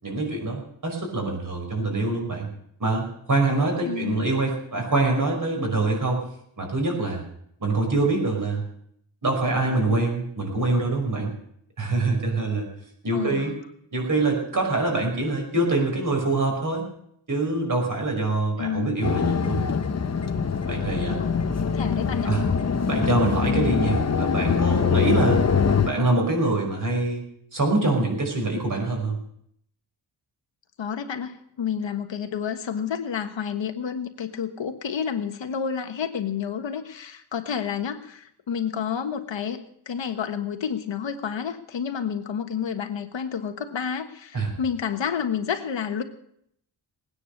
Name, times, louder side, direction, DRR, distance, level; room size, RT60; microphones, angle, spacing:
voice 1, 0.0-2.5 2.8-6.2 6.6-7.2 7.6-8.6 9.2-11.3 11.8-12.6 13.0-13.5 13.9-16.8 17.3-19.7 20.7-21.2 22.2-22.4 22.9-25.5 25.8-27.2 27.5-29.2 44.3-44.5, right 2 dB, 40° right, 1 dB, 5.5 m, -24 dB
voice 2, 3.8-4.3 13.1-13.6 18.6-19.0 21.2-22.4 30.8-46.0, left 7 dB, 70° left, 7 dB, 1.4 m, -30 dB
sound 1, 19.0-25.9, left 6 dB, 35° left, 0.9 m, -23 dB
19.0 x 9.7 x 6.6 m, 0.71 s
wide cardioid pair, 140°, 46 cm